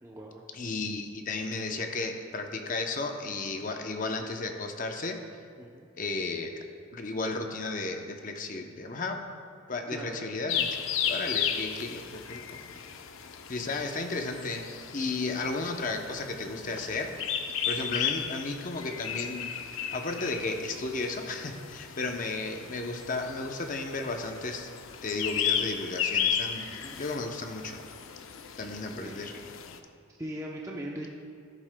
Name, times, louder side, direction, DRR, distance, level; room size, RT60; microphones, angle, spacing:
voice 1, 0.0-0.4 5.6-5.9 9.9-10.2 26.8-27.0 28.5-28.6 28.9-29.3 30.1-31.1, right 1 dB, 15° right, -3 dB, 0.6 m, -40 dB
voice 2, 0.5-5.2 6.0-6.7 6.9-9.2 9.7-10.8 11.0-12.4 12.7-12.9 13.5-17.2 17.7-24.7 25.0-26.7 27.0-27.8 28.6-29.3, left 3 dB, 40° left, 4 dB, 0.7 m, -34 dB
sound 1, 10.5-29.8, left 8 dB, 75° left, 0.5 m, -35 dB
13.0 x 11.0 x 2.2 m, 2.2 s
head